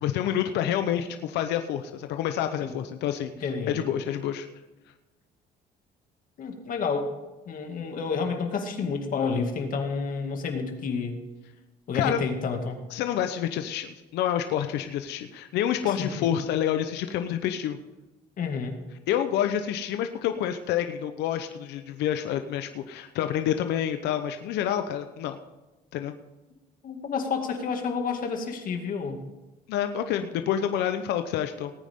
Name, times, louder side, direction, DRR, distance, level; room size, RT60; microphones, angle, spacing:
voice 1, 0.0-3.3 3.7-4.5 11.9-12.2 12.9-17.8 19.1-25.4 25.9-26.1 29.7-31.7, left 10 dB, 85° left, 7 dB, 0.9 m, -28 dB
voice 2, 3.4-3.8 6.4-7.1 7.5-11.2 11.9-12.8 16.0-16.3 18.4-18.8 26.8-29.2, left 5 dB, 55° left, 4 dB, 2.3 m, -30 dB
18.5 x 9.3 x 3.7 m, 1.1 s
cardioid pair, 110°, 17 cm